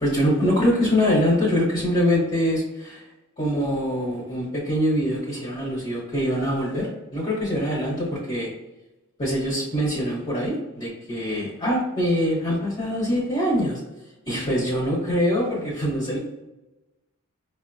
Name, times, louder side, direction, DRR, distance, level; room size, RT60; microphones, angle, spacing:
voice 1, 0.0-3.1 3.4-8.5 9.2-13.8 14.3-16.2, equal, 35° left, -7 dB, 1.1 m, -24 dB
5.1 x 2.2 x 2.6 m, 1.0 s
head